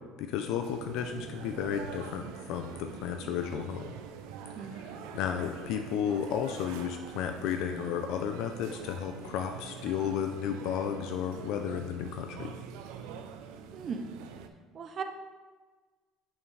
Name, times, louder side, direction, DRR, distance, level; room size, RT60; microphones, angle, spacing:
voice 1, 0.2-2.2 2.5-3.9 4.7-12.5, left 8 dB, 60° left, 5 dB, 0.4 m, -33 dB
sound 1, 0.6-14.5, right 7 dB, 85° right, 0.5 m, -45 dB
voice 2, 4.6-5.0 13.7-14.1 14.7-15.0, right 5 dB, 30° right, 7 dB, 0.5 m, -38 dB
6.9 x 5.7 x 3.2 m, 1.4 s
cardioid pair, 165°, 0 cm